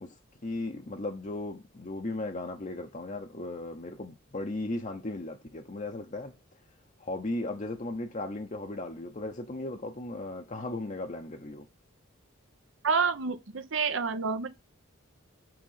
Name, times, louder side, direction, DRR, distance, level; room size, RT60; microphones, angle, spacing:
voice 1, 0.0-6.4 7.0-11.7, left 2 dB, 35° left, 0.8 m, -36 dB
voice 2, 12.8-14.5, right 5 dB, 65° right, 0.8 m, -28 dB
7.8 x 3.9 x 5.6 m
head